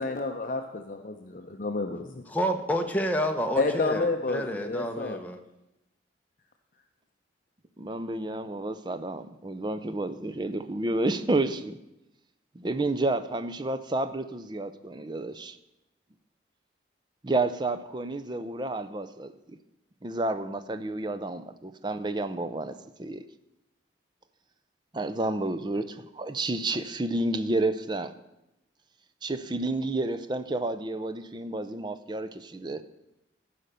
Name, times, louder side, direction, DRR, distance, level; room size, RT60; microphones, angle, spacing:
voice 1, 0.0-2.2 3.5-5.2, left 3 dB, 45° left, 0.6 m, -30 dB
voice 2, 2.3-5.4, equal, 10° left, 0.8 m, -29 dB
voice 3, 7.8-11.8 12.6-15.6 17.2-19.6 20.0-23.2 24.9-28.1 29.2-32.8, right 2 dB, 25° right, 0.5 m, -30 dB
14.0 x 5.1 x 6.7 m
head